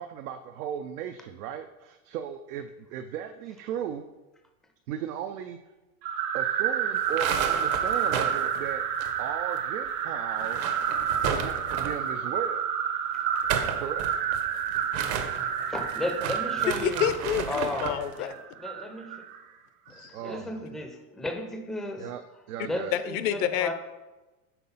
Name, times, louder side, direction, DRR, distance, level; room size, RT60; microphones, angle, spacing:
voice 1, 0.0-4.0 4.9-5.6 6.3-8.8 9.2-10.7 11.3-12.7 13.8-14.1 20.1-20.6 22.0-22.2 22.5-22.9, right 9 dB, 85° right, 7 dB, 0.5 m, -36 dB
sound 1, 6.0-19.4, right 8 dB, 45° right, 0.6 m, -29 dB
sound 2, 7.0-9.6 9.8-9.9 10.3-12.1 13.2-18.0, right 7 dB, 65° right, 1.0 m, -34 dB
voice 2, 15.7-17.2 17.5-19.2 19.9-22.1 22.6-23.7, left 1 dB, ahead, 4 dB, 0.4 m, -35 dB
voice 3, 16.8-18.3 19.9-20.2 22.0-22.1 22.9-23.7, left 10 dB, 60° left, 12 dB, 0.7 m, -28 dB
5.8 x 3.8 x 5.5 m, 1.1 s
supercardioid pair, 115°, 44 cm